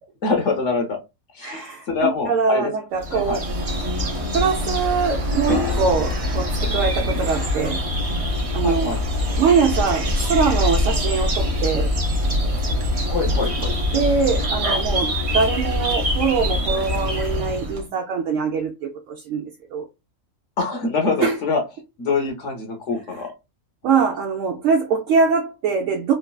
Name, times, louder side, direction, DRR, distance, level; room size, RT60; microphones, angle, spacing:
voice 1, 0.2-1.0 1.3-2.7 3.1-3.4 8.6-9.0 13.1-13.7 20.6-21.6 22.0-23.3, left 4 dB, 65° left, 1.0 m, -24 dB
voice 2, 1.4-3.4 4.3-7.8 8.5-9.0 9.4-11.9 13.9-19.9 21.2-21.4 23.8-26.1, right 5 dB, 75° right, 0.9 m, -22 dB
sound 1, 2.4-3.1 5.5-9.5 9.7-9.8, left 7 dB, 85° left, 1.3 m, -36 dB
sound 2, 3.0-17.8, left 1 dB, 40° right, 0.5 m, -24 dB
3.0 x 2.4 x 2.2 m
omnidirectional pair, 1.4 m